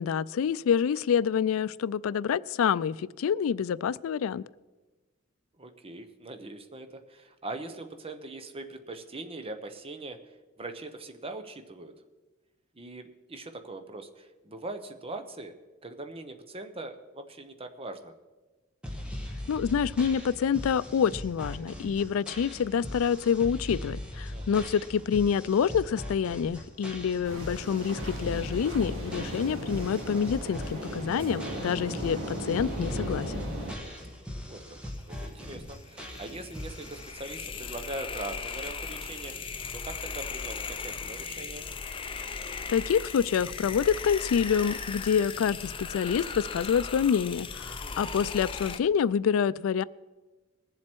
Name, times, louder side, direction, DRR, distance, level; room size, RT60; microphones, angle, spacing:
voice 1, 0.0-4.4 19.5-33.3 42.7-49.8, left 7 dB, 85° left, 19 dB, 0.3 m, -27 dB
voice 2, 5.6-10.2 10.6-11.9 12.7-15.5 15.8-18.1 24.3-24.7 34.3-34.8 35.1-41.6 47.7-48.0, right 2 dB, 30° right, 7 dB, 0.9 m, -41 dB
sound 1, 18.8-37.1, left 1 dB, 5° right, 1.5 m, -40 dB
sound 2, 27.2-33.8, right 1 dB, 70° right, 3.3 m, -37 dB
sound 3, 35.7-48.8, left 5 dB, 25° left, 0.6 m, -38 dB
21.0 x 7.5 x 4.5 m, 1.2 s
head